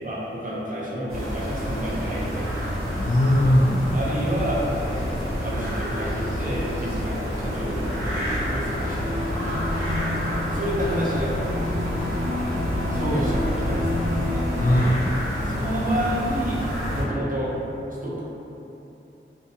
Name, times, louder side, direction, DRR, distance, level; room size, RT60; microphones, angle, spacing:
voice 1, 0.0-2.8 3.9-9.5 10.5-11.6 12.2-14.5 15.5-16.6 16.9-17.5 18.0-18.2, equal, 40° right, -7 dB, 0.6 m, -30 dB
sound 1, 1.1-17.0, equal, 90° right, 0.7 m, -28 dB
voice 2, 2.9-4.0 9.4-10.4 14.5-15.1, left 1 dB, 45° left, -1 dB, 0.4 m, -22 dB
sound 2, 8.6-14.7, left 2 dB, 20° left, 0.9 m, -31 dB
2.6 x 2.2 x 2.6 m, 2.8 s
wide cardioid pair, 50°, 21 cm